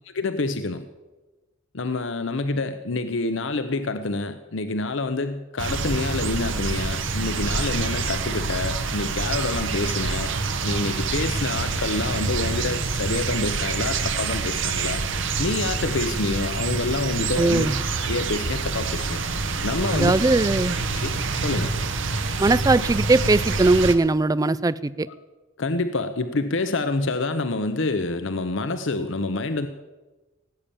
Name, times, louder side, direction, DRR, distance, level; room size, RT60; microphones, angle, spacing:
voice 1, 0.1-0.9 1.7-10.3 10.6-15.0 15.4-17.7 18.0-19.2 19.6-20.1 21.0-21.2 21.4-21.7 25.6-29.7, left 3 dB, 65° left, 9 dB, 0.8 m, -27 dB
sound 1, 5.6-23.9, right 4 dB, 65° right, 1.1 m, -26 dB
voice 2, 17.4-17.8 19.9-20.8 22.4-25.1, right 2 dB, 20° right, 18 dB, 0.4 m, -20 dB
18.0 x 8.7 x 7.0 m, 1.1 s
head